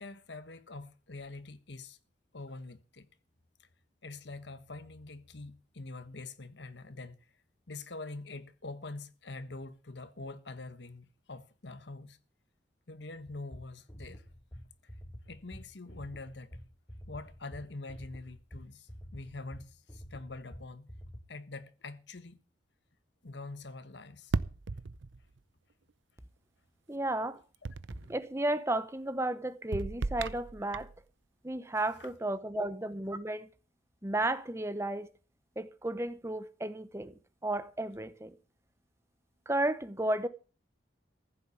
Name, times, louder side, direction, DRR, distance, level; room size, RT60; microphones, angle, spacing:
voice 1, 0.0-2.0 2.3-3.1 3.6-3.7 4.0-7.2 7.7-12.2 12.9-14.2 15.3-16.6 17.1-20.9 21.3-22.4 23.2-24.3 32.2-32.6, left 3 dB, 70° left, 1.3 m, -45 dB
sound 1, 13.3-21.2, equal, 15° left, 1.2 m, -48 dB
sound 2, 24.3-25.4 27.7-28.2 29.7-31.0, right 3 dB, 85° right, 0.7 m, -36 dB
voice 2, 26.9-27.4 28.1-30.9 31.4-33.5 34.0-35.1 35.6-38.3 39.5-40.3, right 1 dB, 15° right, 0.8 m, -33 dB
15.0 x 7.1 x 8.4 m
head